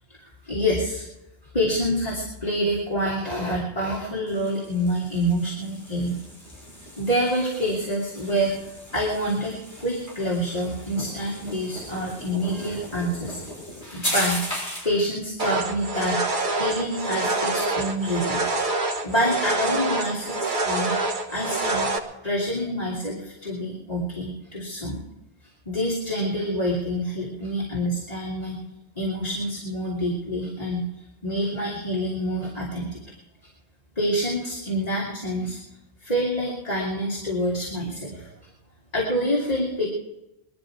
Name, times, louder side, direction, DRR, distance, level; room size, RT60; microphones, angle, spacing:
voice 1, 0.4-1.1 1.5-6.2 7.0-8.5 8.9-13.4 13.9-14.4 14.8-16.2 16.5-18.4 19.0-20.9 21.3-21.9 22.2-25.0 25.7-28.6 29.0-30.8 31.2-33.2 34.0-35.6 36.0-38.3 38.9-39.9, equal, 35° left, -5 dB, 2.9 m, -27 dB
sound 1, 4.3-15.0, equal, 80° left, 6.8 m, -36 dB
sound 2, 15.4-22.0, right 2 dB, 50° right, 1.4 m, -26 dB
20.5 x 12.5 x 4.7 m, 0.91 s
omnidirectional pair, 1.1 m